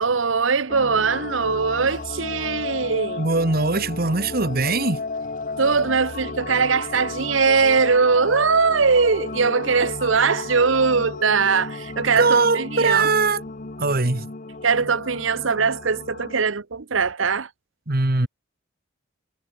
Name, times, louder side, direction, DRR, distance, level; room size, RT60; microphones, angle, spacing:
voice 1, 0.0-3.3 5.6-13.1 14.6-17.5, right 5 dB, 70° right, 0.9 m, -21 dB
sound 1, 0.7-16.5, left 3 dB, 40° left, 1.0 m, -33 dB
voice 2, 3.2-5.0 12.1-13.4 13.8-14.3 17.9-18.3, right 3 dB, 45° right, 1.7 m, -21 dB
head